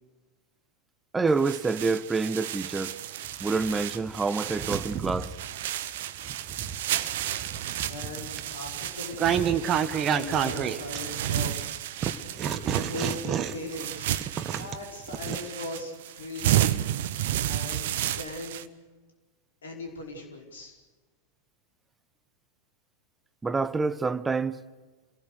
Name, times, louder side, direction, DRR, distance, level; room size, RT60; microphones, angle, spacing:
voice 1, 1.1-3.0 3.4-5.3 23.4-24.6, right 4 dB, 10° right, 0.9 m, -27 dB
sound 1, 1.3-18.7, right 12 dB, 55° right, 1.0 m, -32 dB
sound 2, 3.2-5.4 6.0-11.6 12.0-15.4, right 8 dB, 30° right, 1.4 m, -30 dB
voice 2, 7.9-9.5 10.0-11.7 12.9-16.7 17.4-18.7 19.6-20.7, left 2 dB, 65° left, 4.8 m, -39 dB
27.5 x 19.0 x 6.6 m
figure-of-eight pair, 90°, 0 cm